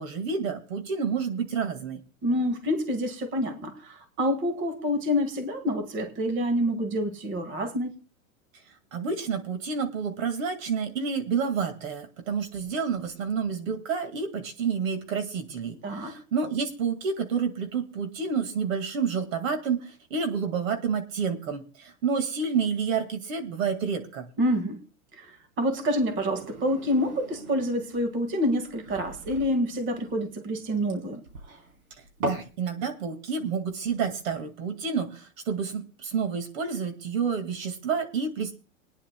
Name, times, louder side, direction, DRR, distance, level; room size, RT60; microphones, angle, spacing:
voice 1, 0.0-2.0 8.9-24.3 32.2-38.5, right 6 dB, 70° right, 2.1 m, -29 dB
voice 2, 2.2-7.9 15.8-16.2 24.4-24.8 25.2-31.2, equal, 30° right, 1.8 m, -27 dB
sound 1, 26.0-32.5, right 1 dB, 85° right, 3.9 m, -39 dB
27.5 x 9.9 x 2.2 m
hypercardioid pair, 130°, 41 cm